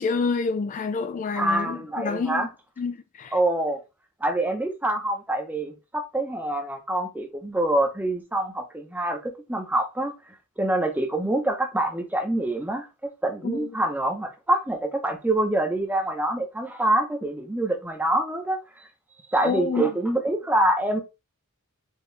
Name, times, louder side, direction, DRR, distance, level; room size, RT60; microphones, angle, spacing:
voice 1, 0.0-2.5 2.8-3.3 13.4-13.7 19.4-19.9, left 4 dB, 35° left, 0.3 m, -28 dB
voice 2, 1.4-2.5 3.3-3.8 4.2-10.1 10.6-12.9 13.2-18.6 19.3-21.0, right 1 dB, 10° right, 0.8 m, -25 dB
4.5 x 3.0 x 3.2 m
head